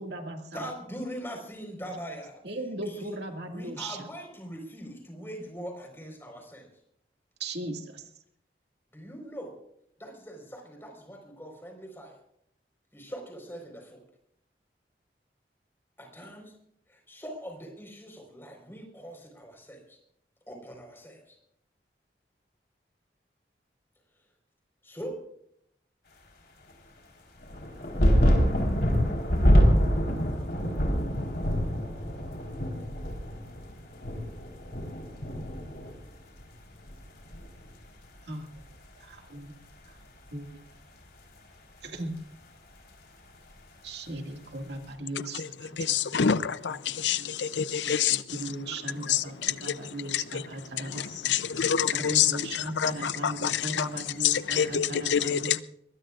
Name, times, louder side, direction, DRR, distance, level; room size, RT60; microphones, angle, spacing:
voice 1, 0.0-0.7 2.4-4.1 7.4-8.0 38.3-38.6 39.0-39.5 40.3-40.5 41.8-42.2 43.8-46.1 47.0-47.5 47.8-51.6 51.9-55.6, right 1 dB, 75° right, 3 dB, 2.2 m, -38 dB
voice 2, 0.5-2.4 2.8-3.2 3.5-6.7 8.9-9.5 10.0-12.2 12.9-14.0 16.0-16.5 16.9-20.0 20.5-21.4 24.8-25.1, equal, 15° left, 2 dB, 4.5 m, -42 dB
sound 1, 27.4-36.5 36.7-37.6 38.6-38.7, equal, 60° left, 4.0 m, -25 dB
voice 3, 45.8-48.4 49.0-50.4 50.8-53.9 54.2-55.6, left 8 dB, 85° left, 14 dB, 0.6 m, -27 dB
23.0 x 20.5 x 2.5 m, 0.72 s
head